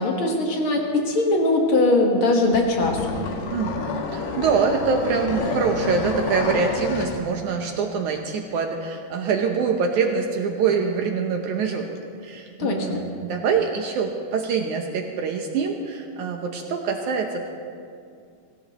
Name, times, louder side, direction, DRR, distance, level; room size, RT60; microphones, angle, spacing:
voice 1, 0.0-3.2 12.6-13.0, left 2 dB, 60° left, 0 dB, 1.3 m, -21 dB
sound 1, 2.5-7.2, left 4 dB, 80° left, 3.3 m, -29 dB
voice 2, 3.5-12.0 12.2-17.5, right 5 dB, 80° right, 3 dB, 1.7 m, -25 dB
24.5 x 15.5 x 3.0 m, 2.4 s
omnidirectional pair, 4.6 m